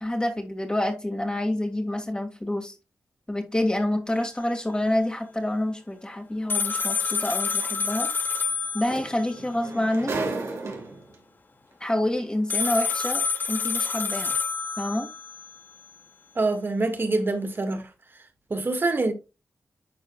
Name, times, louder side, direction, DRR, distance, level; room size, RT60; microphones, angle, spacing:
voice 1, 0.0-2.8 3.3-8.1 8.7-10.1 11.8-14.3 14.8-15.1, left 1 dB, 20° left, 2.2 m, -27 dB
sound 1, 6.5-9.4 12.5-15.5, left 5 dB, 40° left, 0.9 m, -28 dB
sound 2, 6.7-6.9 8.5-8.6 8.9-11.1 12.1-12.2, right 3 dB, 70° right, 2.6 m, -33 dB
voice 2, 16.4-17.9 18.5-19.1, right 2 dB, 45° right, 1.8 m, -25 dB
11.0 x 4.7 x 2.3 m
cardioid pair, 45°, 5 cm